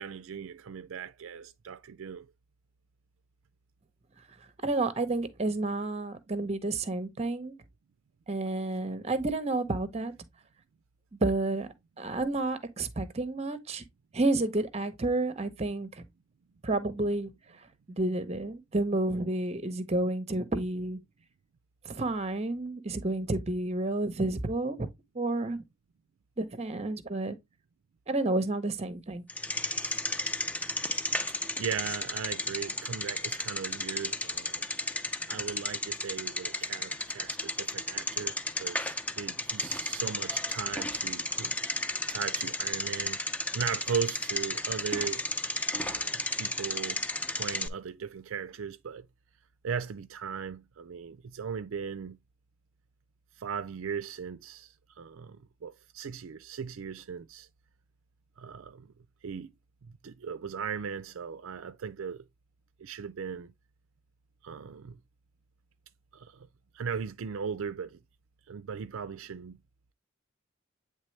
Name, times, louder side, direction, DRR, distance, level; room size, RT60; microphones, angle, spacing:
voice 1, 0.0-2.3 30.7-31.1 31.6-34.6 35.3-41.6 42.1-43.2 43.5-45.2 45.7-47.0 47.3-49.1 49.6-52.2 53.4-57.5 58.4-58.9 59.2-59.5 59.8-62.3 62.8-63.5 64.4-65.0 66.1-66.5 66.7-68.0 68.5-69.6, right 6 dB, 65° right, 0.4 m, -38 dB
voice 2, 4.6-7.5 8.3-10.1 11.2-11.7 12.0-13.8 14.1-16.0 16.6-17.3 17.9-21.0 21.8-24.9 25.1-25.6 26.4-27.4 28.1-29.2, right 2 dB, 30° right, 0.8 m, -30 dB
Bicycle, 29.3-47.7, left 2 dB, 5° left, 0.4 m, -33 dB
8.8 x 3.4 x 3.2 m
head